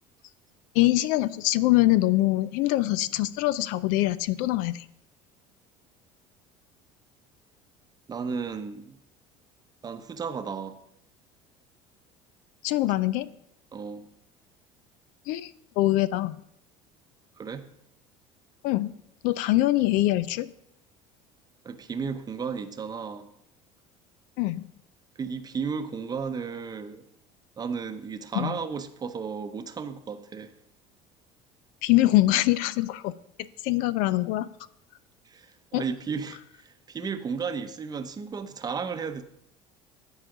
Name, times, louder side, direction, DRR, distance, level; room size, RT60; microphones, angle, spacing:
voice 1, 0.7-4.9 12.6-13.3 15.3-16.4 18.6-19.0 19.2-20.5 24.4-24.7 28.3-28.6 31.8-33.1 33.6-34.5 35.7-35.8, left 16 dB, 70° left, 0.4 m, -24 dB
voice 2, 8.1-9.0 9.8-10.8 13.7-14.0 17.4-17.7 21.6-23.3 25.2-27.0 27.6-30.5 35.2-39.2, right 5 dB, 30° right, 0.7 m, -34 dB
10.5 x 4.8 x 4.9 m
supercardioid pair, 95°, 14 cm